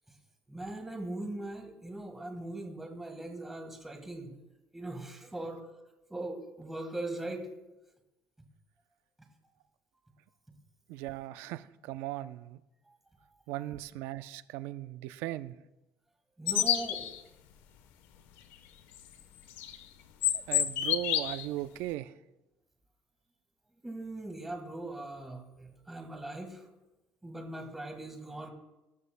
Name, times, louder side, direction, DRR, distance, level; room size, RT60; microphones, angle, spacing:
voice 1, 0.5-4.4 4.7-5.6 6.1-7.5 12.9-13.0 16.4-17.1 23.8-26.7 27.2-28.5, right 1 dB, 5° right, 3 dB, 1.6 m, -40 dB
voice 2, 10.9-12.6 13.5-15.6 20.3-22.2, right 15 dB, 85° right, 13 dB, 0.5 m, -38 dB
sound 1, 16.5-17.2 19.4-19.8 20.2-21.4, left 11 dB, 85° left, 1.0 m, -28 dB
20.0 x 12.5 x 2.2 m, 0.99 s
cardioid pair, 155°, 4 cm